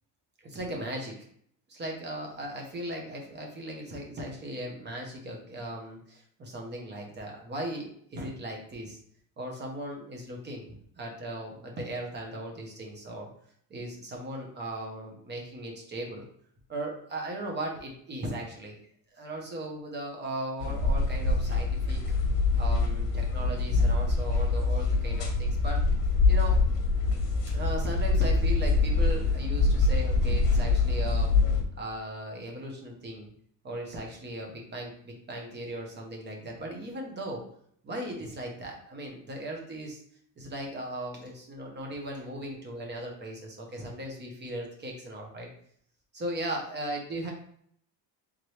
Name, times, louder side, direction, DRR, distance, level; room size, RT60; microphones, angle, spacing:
voice 1, 0.4-1.1 1.7-9.0 9.4-10.7 11.0-13.3 13.7-16.3 16.7-18.8 19.1-22.0 22.6-25.8 26.3-26.6 27.5-31.3 31.8-33.3 33.6-37.4 37.8-40.0 40.4-45.5 46.1-47.3, right 1 dB, 25° right, 0 dB, 0.8 m, -37 dB
sound 1, 20.6-31.6, left 3 dB, 75° left, 1.1 m, -25 dB
3.7 x 3.1 x 3.2 m, 0.65 s
cardioid pair, 160°, 43 cm